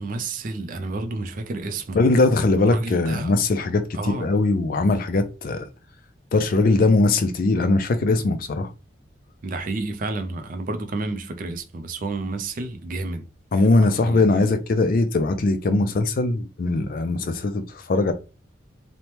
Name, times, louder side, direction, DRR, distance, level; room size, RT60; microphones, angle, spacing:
voice 1, 0.0-2.1 2.7-3.3 3.9-4.3 9.4-13.2 13.5-14.5, right 2 dB, 45° right, 0.4 m, -31 dB
voice 2, 1.9-5.7 6.3-8.7 13.5-17.6 17.9-18.1, left 3 dB, 45° left, 0.4 m, -20 dB
3.1 x 2.1 x 2.8 m
head